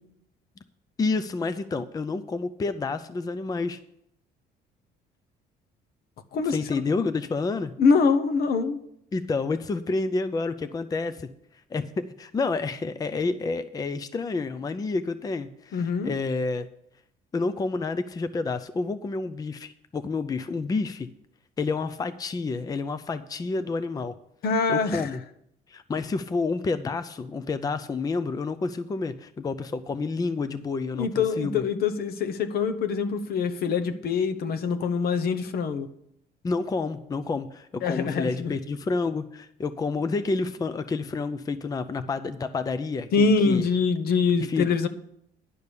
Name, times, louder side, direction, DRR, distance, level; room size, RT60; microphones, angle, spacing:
voice 1, 1.0-3.8 6.5-7.7 9.1-11.3 11.7-16.7 17.3-21.1 21.6-24.1 24.7-25.2 25.7-31.6 36.4-43.6 44.5-44.7, left 3 dB, 20° left, 12 dB, 0.5 m, -29 dB
voice 2, 7.8-8.8 15.7-16.1 24.4-25.1 30.9-35.9 37.8-38.5 43.1-44.9, left 5 dB, 65° left, 10 dB, 1.0 m, -24 dB
10.5 x 5.2 x 8.3 m, 0.74 s
cardioid pair, 110°, 17 cm